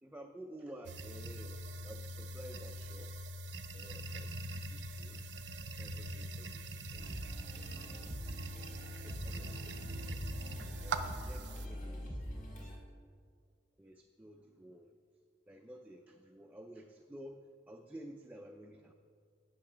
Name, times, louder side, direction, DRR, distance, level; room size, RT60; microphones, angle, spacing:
voice 1, 0.0-3.2 3.7-5.3 5.8-7.0 7.9-8.3 9.0-10.1 10.8-12.3 12.5-12.7 13.8-15.0 15.5-18.9, right 1 dB, 10° right, 3 dB, 0.4 m, -52 dB
sound 1, 0.8-11.7, right 1 dB, 65° right, 0.5 m, -43 dB
sound 2, 6.9-12.8, equal, 45° left, 1.6 m, -44 dB
9.1 x 6.1 x 6.0 m, 2.2 s
head